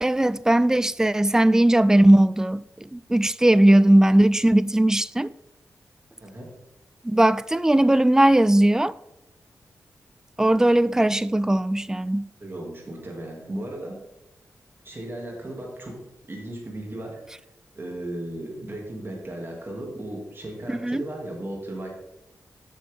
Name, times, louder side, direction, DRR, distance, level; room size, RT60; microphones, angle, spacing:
voice 1, 0.0-5.3 7.0-8.9 10.4-12.3 20.7-21.0, right 1 dB, 10° right, 0.3 m, -19 dB
voice 2, 12.4-14.0 14.8-17.2 17.7-22.0, right 1 dB, 35° right, 2.4 m, -36 dB
8.3 x 6.7 x 3.6 m
cardioid pair, 60°, 6 cm